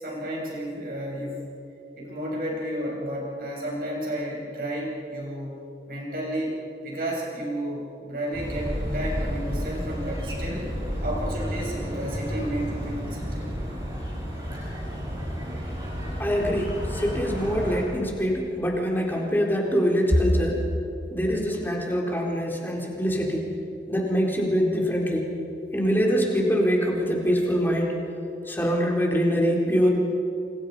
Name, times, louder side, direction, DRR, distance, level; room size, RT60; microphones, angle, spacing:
voice 1, 0.0-1.4 2.0-5.6 5.9-6.6 6.8-10.7 11.0-13.5 22.0-22.2, right 1 dB, 55° right, -3 dB, 7.8 m, -32 dB
sound 1, 8.3-17.8, equal, 25° right, 7.9 m, -31 dB
voice 2, 16.2-20.6 21.1-23.5 23.9-25.3 25.7-27.9 28.5-29.9, equal, 10° left, -1 dB, 4.0 m, -24 dB
28.5 x 27.5 x 5.5 m, 2.8 s
head